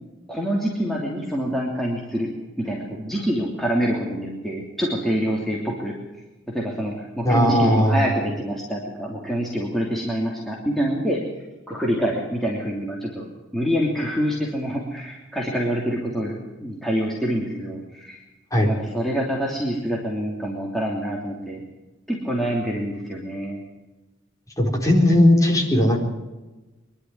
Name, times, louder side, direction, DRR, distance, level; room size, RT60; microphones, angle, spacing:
voice 1, 0.3-2.3 2.6-5.9 6.5-11.2 11.7-13.3 13.5-16.3 16.6-18.2 18.6-21.6 22.1-23.6, equal, ahead, -3 dB, 3.0 m, -26 dB
voice 2, 7.2-8.0 18.5-18.7 24.6-26.0, left 1 dB, 15° left, 0 dB, 4.3 m, -17 dB
23.5 x 11.5 x 9.7 m, 1.1 s
head